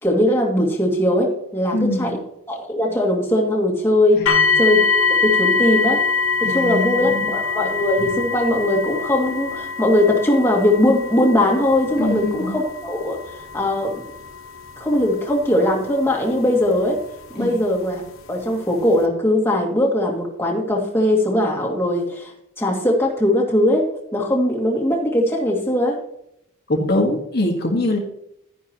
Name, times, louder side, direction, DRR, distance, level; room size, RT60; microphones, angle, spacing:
voice 1, 0.0-2.2 2.5-4.2 4.6-4.8 5.1-6.0 6.4-13.2 13.5-13.9 14.8-17.0 17.3-18.0 18.3-22.3 22.6-26.0, left 1 dB, 10° left, -2 dB, 2.3 m, -20 dB
voice 2, 1.7-2.2 4.1-4.5 6.4-7.2 12.0-12.5 17.4-17.6 26.7-28.0, left 1 dB, 50° left, 1 dB, 1.6 m, -23 dB
sound 1, 4.3-17.1 18.0-18.1 18.7-18.8, left 4 dB, 80° left, 1.1 m, -24 dB
12.0 x 10.0 x 3.0 m, 0.76 s
head